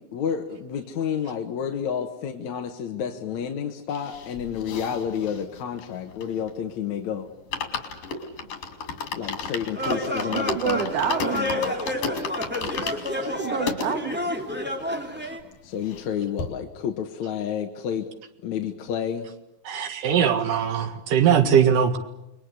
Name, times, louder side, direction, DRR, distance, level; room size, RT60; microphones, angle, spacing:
voice 1, 0.0-7.3 9.1-10.8 11.3-11.8 15.6-18.1 18.4-19.3, left 8 dB, 65° left, 3 dB, 2.6 m, -30 dB
sound 1, 3.9-6.7 7.0-7.1 7.3-13.9 14.5-14.6 14.7-14.8 15.1-16.1 16.4-16.5, left 5 dB, 85° left, 4.3 m, -33 dB
sound 2, 9.7-15.4, left 1 dB, 5° right, 2.3 m, -29 dB
voice 2, 10.3-11.4 13.3-14.2, right 8 dB, 55° right, 7 dB, 2.2 m, -28 dB
voice 3, 19.7-22.0, right 8 dB, 85° right, 7 dB, 3.4 m, -20 dB
29.0 x 21.0 x 8.3 m, 0.91 s
omnidirectional pair, 3.7 m